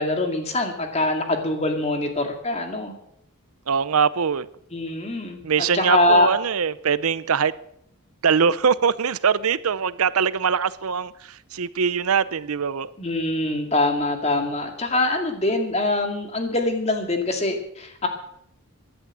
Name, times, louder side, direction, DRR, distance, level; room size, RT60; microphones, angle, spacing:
voice 1, 0.0-2.9 4.7-5.4 5.7-6.3 13.0-18.1, left 2 dB, 30° left, 4 dB, 2.3 m, -23 dB
voice 2, 3.7-4.5 5.4-7.5 8.2-12.9, right 6 dB, 85° right, 17 dB, 0.7 m, -22 dB
15.5 x 11.0 x 7.4 m, 0.73 s
head